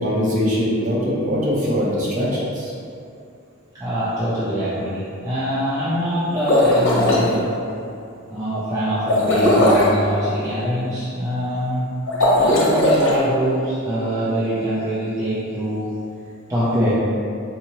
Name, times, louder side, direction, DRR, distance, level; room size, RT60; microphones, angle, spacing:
voice 1, 0.0-2.7, equal, 40° right, -7 dB, 0.9 m, -22 dB
voice 2, 3.7-7.5 8.3-11.8 12.3-15.9 16.5-17.0, equal, 15° right, -11 dB, 0.5 m, -23 dB
sound 1, 6.3-7.2 9.1-10.0 12.1-13.2, left 1 dB, 90° left, 0.9 m, -17 dB
3.9 x 2.7 x 2.9 m, 2.5 s
head